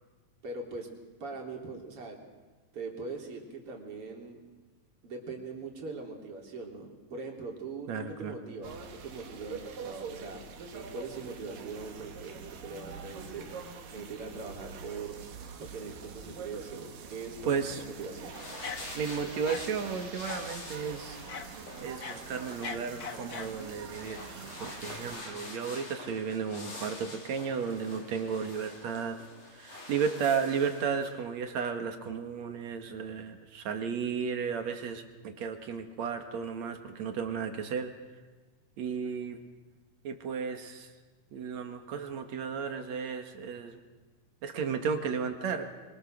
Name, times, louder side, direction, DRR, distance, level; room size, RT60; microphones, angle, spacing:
voice 1, 0.4-0.9 1.2-2.2 2.7-4.4 5.0-10.5 10.7-13.7 13.9-15.2 15.6-18.3, right 3 dB, 40° right, 0 dB, 4.2 m, -41 dB
voice 2, 7.9-8.4 17.4-17.8 18.9-21.2 21.8-29.2 29.5-37.9 38.8-39.4 40.0-40.9 41.3-43.8 44.4-45.7, right 6 dB, 55° right, 6 dB, 2.8 m, -34 dB
sound 1, 8.6-25.2, right 6 dB, 75° right, 3.6 m, -45 dB
sound 2, 18.0-31.1, left 2 dB, 45° left, 5.5 m, -46 dB
sound 3, 18.6-19.1 19.4-19.6 20.2-20.5 21.3-21.5 21.9-23.6, left 5 dB, 85° left, 0.8 m, -40 dB
25.5 x 24.0 x 6.6 m, 1.3 s
omnidirectional pair, 4.0 m